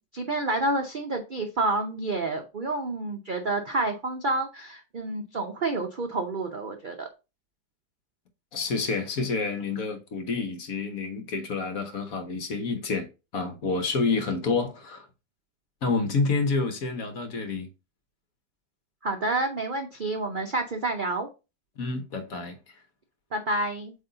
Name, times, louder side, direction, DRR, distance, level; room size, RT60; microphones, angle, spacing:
voice 1, 0.0-7.1 19.0-21.3 23.3-23.9, right 2 dB, 70° right, 0.4 m, -29 dB
voice 2, 8.5-13.1 13.3-15.1 15.8-17.7 21.8-22.7, left 4 dB, 55° left, 1.2 m, -28 dB
8.0 x 3.1 x 3.9 m
omnidirectional pair, 1.9 m